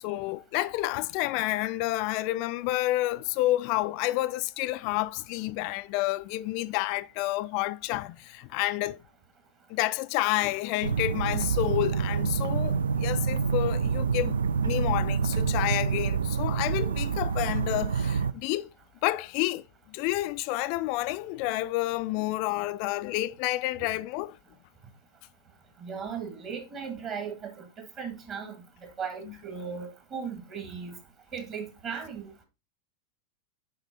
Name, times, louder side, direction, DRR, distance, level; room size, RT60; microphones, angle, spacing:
voice 1, 0.0-9.0 9.7-18.7 19.0-24.4 29.2-29.3, left 17 dB, 45° left, 0.4 m, -29 dB
sound 1, 10.8-18.3, right 6 dB, 70° right, 0.3 m, -27 dB
voice 2, 25.8-27.7 28.0-28.6 29.0-31.0 31.3-32.3, right 6 dB, 30° right, 1.7 m, -37 dB
6.4 x 4.9 x 4.0 m
figure-of-eight pair, 90°, 0 cm